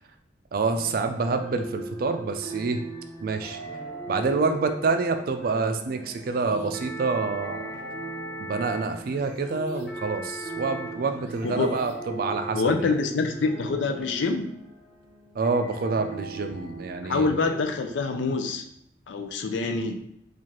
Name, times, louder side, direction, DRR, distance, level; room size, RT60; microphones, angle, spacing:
voice 1, 0.5-2.8 3.2-3.6 4.1-7.6 8.4-12.9 15.4-17.3, right 4 dB, 50° right, 7 dB, 0.3 m, -27 dB
sound 1, 0.7-17.7, right 2 dB, 10° right, 0.7 m, -40 dB
sound 2, 6.1-12.3, left 1 dB, 65° left, 0.9 m, -41 dB
voice 2, 11.4-11.7 12.5-14.5 17.0-18.6 19.1-20.0, left 3 dB, 80° left, 6 dB, 0.4 m, -26 dB
4.6 x 2.4 x 2.9 m, 0.77 s
head